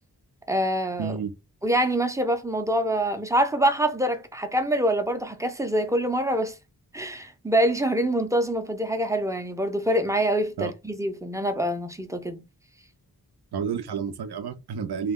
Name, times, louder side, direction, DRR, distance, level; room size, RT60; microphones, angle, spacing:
voice 1, 0.5-1.2 1.6-6.5 6.9-12.4, right 1 dB, 10° right, 0.4 m, -25 dB
voice 2, 1.0-1.3 10.6-10.7 13.5-15.1, right 6 dB, 90° right, 0.5 m, -30 dB
2.2 x 2.1 x 3.4 m
wide cardioid pair, 80°, 37 cm